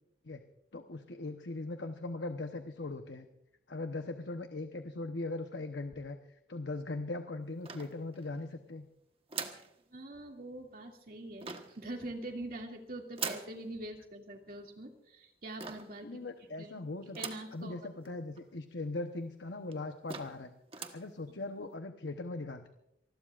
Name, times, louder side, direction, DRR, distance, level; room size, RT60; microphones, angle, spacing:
voice 1, 0.7-3.3 3.7-6.2 6.5-8.8 16.0-17.2 17.5-20.5 20.9-22.7, left 2 dB, 85° left, 6 dB, 1.0 m, -40 dB
sound 1, 7.6-8.4 9.3-9.7 11.4-11.8 13.2-13.6 15.6-16.0 17.1-17.6 18.0-18.1 18.4-18.5 19.2-19.3 19.7-19.8 20.1-20.4 20.7-21.1, right 5 dB, 35° right, 1.3 m, -41 dB
voice 2, 9.9-16.2 16.6-16.8 17.2-17.8 18.0-18.1 21.3-21.4, right 1 dB, 55° right, 2 dB, 2.5 m, -44 dB
27.0 x 20.5 x 2.5 m, 0.79 s
head